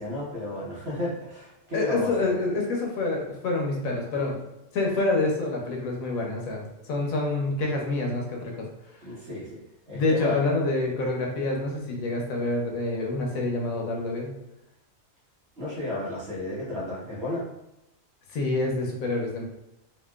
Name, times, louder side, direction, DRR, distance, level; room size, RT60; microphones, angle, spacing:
voice 1, 0.0-2.1 9.0-10.4 15.6-17.4, left 2 dB, 50° right, -6 dB, 1.2 m, -33 dB
voice 2, 1.7-4.4 4.7-8.7 9.9-14.3 18.3-19.4, left 2 dB, 90° left, 0 dB, 1.1 m, -27 dB
2.9 x 2.7 x 2.2 m, 0.89 s
omnidirectional pair, 1.4 m